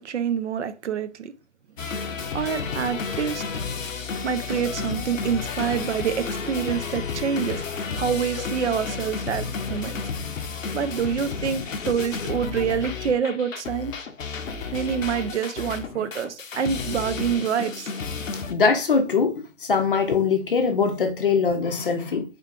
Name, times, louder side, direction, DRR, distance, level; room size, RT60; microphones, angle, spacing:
voice 1, 0.0-1.3 2.3-3.4 4.2-7.6 8.0-10.0 10.7-13.9 14.7-17.9, right 7 dB, 65° right, 0.5 m, -27 dB
sound 1, 1.8-18.5, left 5 dB, 80° left, 0.6 m, -32 dB
voice 2, 18.5-19.3 19.6-22.2, left 5 dB, 45° left, 0.6 m, -22 dB
3.7 x 2.6 x 2.3 m
figure-of-eight pair, 140°, 38 cm